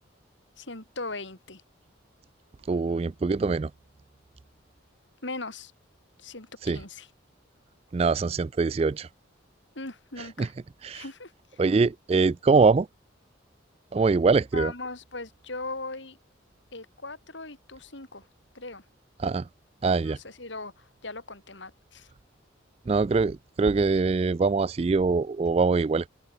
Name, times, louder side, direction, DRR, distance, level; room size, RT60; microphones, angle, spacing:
voice 1, 0.6-1.6 5.2-5.7 6.2-7.1 9.7-10.5 10.9-11.6 12.1-12.2 14.5-16.2 16.7-18.2 18.5-18.8 20.0-22.1, left 3 dB, 70° left, 4.4 m, -39 dB
voice 2, 2.7-3.7 6.6-6.8 7.9-9.1 10.4-10.5 10.8-11.0 11.6-12.9 13.9-14.7 19.2-19.5 19.8-20.2 22.9-26.1, right 4 dB, 30° right, 0.3 m, -23 dB
open air
head